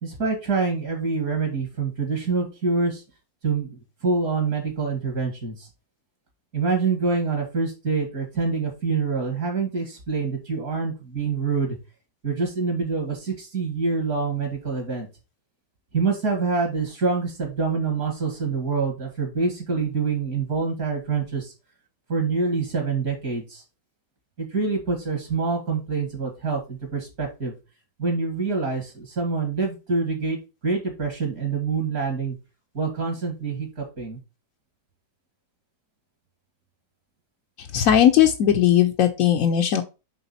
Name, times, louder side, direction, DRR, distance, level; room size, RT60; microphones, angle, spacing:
voice 1, 0.0-3.0 3.4-5.7 6.5-11.8 12.2-15.1 15.9-21.5 22.1-23.6 24.4-27.5 28.0-32.4 32.7-34.2, right 4 dB, 55° right, 3 dB, 2.4 m, -26 dB
voice 2, 37.7-39.8, left 10 dB, 65° left, 3 dB, 0.9 m, -18 dB
8.0 x 3.7 x 4.1 m, 0.28 s
omnidirectional pair, 1.9 m